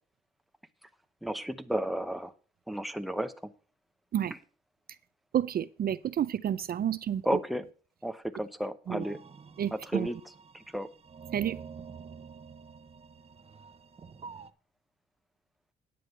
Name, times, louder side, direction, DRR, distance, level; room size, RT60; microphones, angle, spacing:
voice 1, 1.2-2.3 2.7-3.5 7.2-7.7 8.0-9.2 9.7-10.2 10.5-10.9, right 1 dB, ahead, 0.8 m, -32 dB
voice 2, 5.3-7.2 8.9-9.0 9.6-10.1 11.3-11.6, right 10 dB, 50° right, 0.5 m, -30 dB
Horror. Atmosphere. Trip., 9.0-14.5, right 6 dB, 30° right, 0.8 m, -48 dB
10.0 x 7.6 x 5.4 m
cardioid pair, 90°, 20 cm